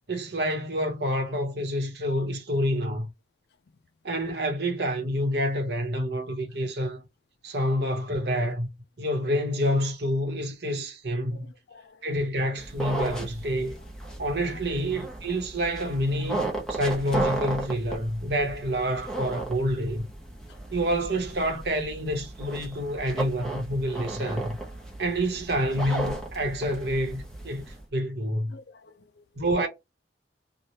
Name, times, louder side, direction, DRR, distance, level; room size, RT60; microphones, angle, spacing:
voice 1, 0.1-3.1 4.0-7.0 7.4-8.7 9.0-11.4 12.0-13.8 14.2-20.0 20.7-24.6 25.0-28.5 29.4-29.7, equal, 65° right, 1.0 m, -28 dB
voice 2, 11.3-12.1 14.5-14.6 28.5-29.7, left 4 dB, 65° left, 0.4 m, -51 dB
sound 1, 12.6-27.8, right 2 dB, 5° left, 0.8 m, -35 dB
3.2 x 2.2 x 2.7 m
head